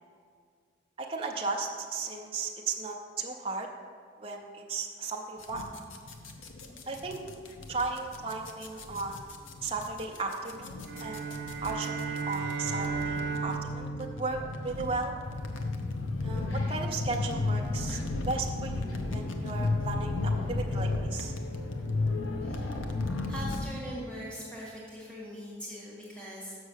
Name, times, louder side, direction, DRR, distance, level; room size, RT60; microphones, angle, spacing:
voice 1, 1.0-3.7 4.2-5.7 6.9-7.2 7.7-9.2 9.6-11.2 11.6-15.2 16.2-18.0 18.3-21.3, right 3 dB, 30° right, 0 dB, 0.5 m, -35 dB
sound 1, 5.4-23.7, left 2 dB, 85° left, 0.8 m, -34 dB
sound 2, 10.8-15.3, right 5 dB, 65° right, 0.7 m, -35 dB
voice 2, 22.4-22.9 23.3-26.6, equal, 5° left, -6 dB, 1.6 m, -41 dB
6.4 x 6.3 x 6.4 m, 2.1 s
head